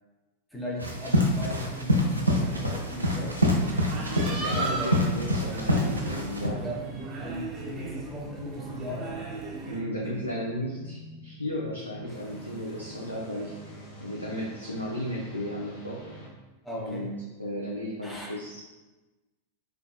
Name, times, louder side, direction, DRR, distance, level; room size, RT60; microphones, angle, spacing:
voice 1, 0.5-3.4 4.5-4.9 6.6-9.2 12.1-12.2 16.6-17.1 18.0-18.3, equal, 5° left, -4 dB, 0.7 m, -37 dB
sound 1, 0.8-6.5, left 1 dB, 85° right, 0.5 m, -26 dB
sound 2, 2.3-9.8, right 3 dB, 30° right, 0.7 m, -37 dB
voice 2, 4.1-6.6 9.7-16.0 16.7-18.6, equal, 85° left, -4 dB, 0.5 m, -34 dB
sound 3, 5.1-16.3, right 2 dB, 55° left, 1.2 m, -45 dB
4.5 x 2.5 x 2.3 m, 1.1 s
figure-of-eight pair, 90°, 0 cm